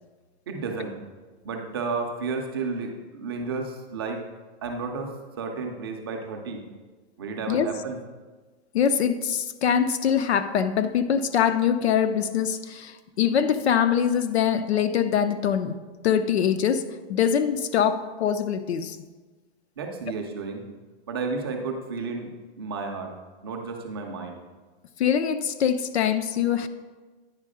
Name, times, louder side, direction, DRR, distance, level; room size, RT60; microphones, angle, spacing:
voice 1, 0.5-1.0 1.4-4.2 4.6-6.6 7.2-8.0 19.8-20.6 21.1-23.1 23.4-24.4, right 4 dB, 25° right, 2 dB, 0.5 m, -32 dB
voice 2, 8.7-15.7 16.0-16.8 17.1-19.0 25.0-26.7, left 8 dB, 85° left, 10 dB, 0.7 m, -23 dB
9.7 x 4.6 x 4.9 m, 1.3 s
supercardioid pair, 175°, 32 cm